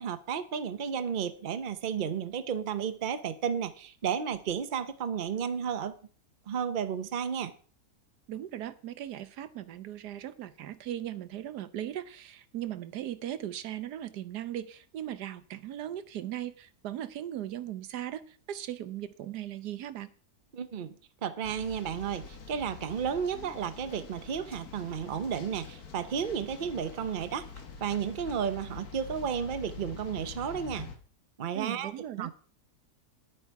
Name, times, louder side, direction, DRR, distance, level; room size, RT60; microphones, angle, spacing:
voice 1, 0.0-6.0 6.5-7.5 20.5-20.9 21.2-27.5 27.8-30.9 31.4-31.9 32.2-32.3, right 7 dB, 40° right, 0.8 m, -33 dB
voice 2, 8.3-20.1 31.5-32.3, right 12 dB, 90° right, 1.4 m, -38 dB
sound 1, 21.4-31.0, left 5 dB, 70° left, 1.9 m, -46 dB
10.0 x 8.7 x 4.7 m
omnidirectional pair, 1.7 m